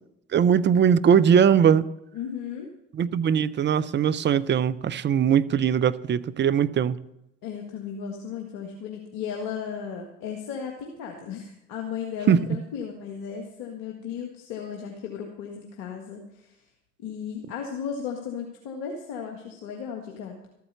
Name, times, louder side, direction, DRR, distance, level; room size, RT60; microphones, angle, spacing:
voice 1, 0.3-1.9 2.9-7.0 12.3-12.6, right 8 dB, 30° right, 0.7 m, -20 dB
voice 2, 2.1-2.7 7.4-16.6 17.0-20.4, left 7 dB, 65° left, 1.8 m, -35 dB
13.0 x 9.3 x 6.9 m
figure-of-eight pair, 60°, 37 cm